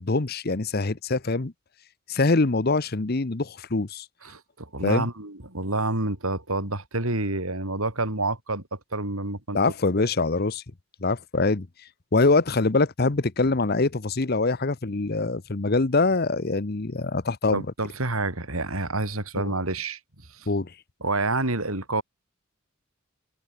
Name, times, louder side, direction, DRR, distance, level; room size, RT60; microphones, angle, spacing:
voice 1, 0.0-1.5 2.1-4.1 4.8-5.1 9.5-10.6 11.0-11.7 12.1-17.7 19.4-19.5 20.5-20.7, left 3 dB, 45° left, 0.9 m, -24 dB
voice 2, 4.2-8.6 8.9-9.6 17.5-20.0 20.3-20.5 21.0-22.0, right 2 dB, 90° right, 5.5 m, -28 dB
open air
head